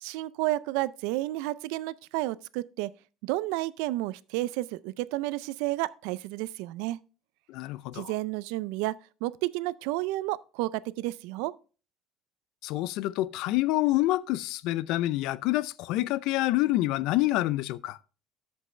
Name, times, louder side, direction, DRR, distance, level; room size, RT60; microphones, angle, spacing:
voice 1, 0.0-2.9 3.2-7.0 7.9-8.9 9.2-11.5, right 17 dB, 80° right, 0.4 m, -31 dB
voice 2, 7.5-8.1 12.6-18.0, left 17 dB, 60° left, 0.4 m, -27 dB
13.0 x 5.3 x 3.2 m
cardioid pair, 170°, 0 cm